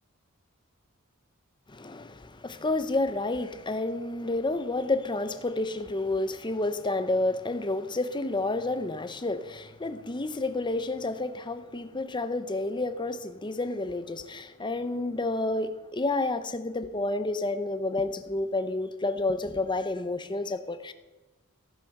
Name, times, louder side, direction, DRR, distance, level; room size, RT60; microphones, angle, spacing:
voice 1, 1.7-20.9, left 2 dB, 20° left, 0.8 m, -30 dB
14.5 x 10.5 x 6.6 m
head